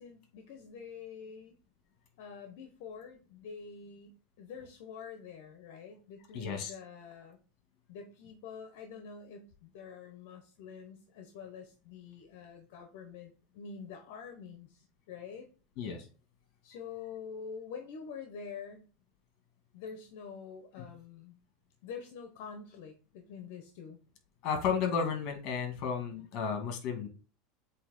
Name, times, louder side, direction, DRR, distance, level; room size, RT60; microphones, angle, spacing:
voice 1, 0.0-1.6 2.2-7.4 7.9-15.5 16.6-18.9 19.7-21.4 21.8-24.0, left 6 dB, 65° left, 5 dB, 1.1 m, -46 dB
voice 2, 6.3-6.7 15.8-16.0 24.4-27.1, left 6 dB, 50° left, 5 dB, 2.1 m, -33 dB
7.8 x 3.0 x 4.3 m, 0.36 s
supercardioid pair, 145°, 0 cm